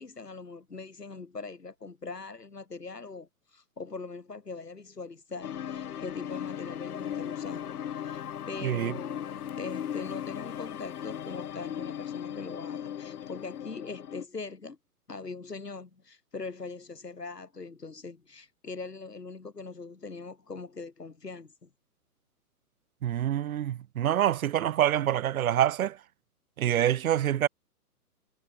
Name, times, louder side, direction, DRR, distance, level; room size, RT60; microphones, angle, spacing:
voice 1, 0.0-14.8 15.1-21.7, left 4 dB, 90° left, 6.2 m, -42 dB
sound 1, 5.4-14.2, left 9 dB, 70° left, 1.0 m, -37 dB
sound 2, 6.3-13.6, left 40 dB or more, 30° left, 3.8 m, -53 dB
voice 2, 8.6-8.9 23.0-26.0 26.6-27.5, right 11 dB, 65° right, 0.7 m, -26 dB
hypercardioid pair, 130°, 46 cm